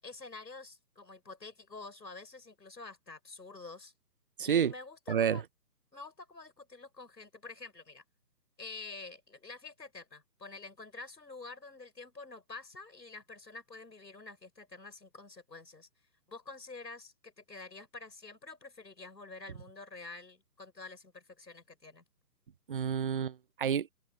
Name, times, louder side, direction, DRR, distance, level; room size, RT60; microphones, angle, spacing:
voice 1, 0.0-3.9 4.4-5.4 5.9-8.0 8.6-15.9 16.3-22.0, left 3 dB, 85° left, 7.0 m, -48 dB
voice 2, 4.4-4.7 5.1-5.4 22.7-23.9, right 8 dB, 35° right, 0.7 m, -29 dB
figure-of-eight pair, 150°, 49 cm